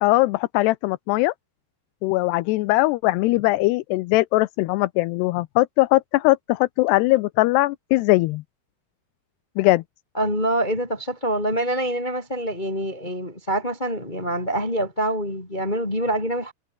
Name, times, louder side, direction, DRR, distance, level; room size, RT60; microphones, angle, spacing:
voice 1, 0.0-1.3 2.0-8.4 9.6-9.8, left 20 dB, 85° left, 2.7 m, -20 dB
voice 2, 10.1-16.5, right 1 dB, 10° left, 4.2 m, -25 dB
omnidirectional pair, 4.8 m